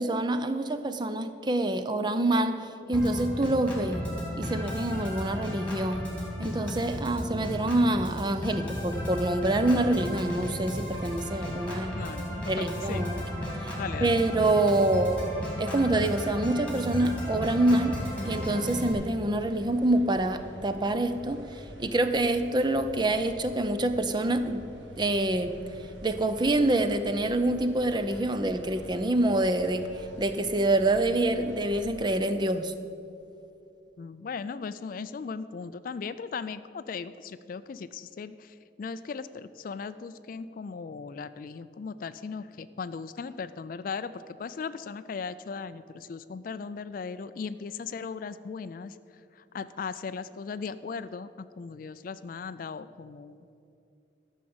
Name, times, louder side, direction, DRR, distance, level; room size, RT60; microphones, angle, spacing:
voice 1, 0.0-2.6 2.9-4.1 4.4-6.1 6.4-12.0 12.5-13.2 13.6-13.8 14.0-15.2 15.6-18.0 18.2-24.6 25.0-25.6 26.0-29.9 30.2-32.7, right 1 dB, 25° right, 9 dB, 0.5 m, -26 dB
Organ, 2.9-18.9, equal, 5° left, 2.2 m, -34 dB
voice 2, 11.9-13.2 13.8-14.1 34.0-49.0 49.3-53.5, left 5 dB, 45° left, 14 dB, 0.3 m, -38 dB
sound 1, 17.2-31.9, equal, 75° right, 1.7 m, -47 dB
13.0 x 6.3 x 7.8 m, 2.7 s
head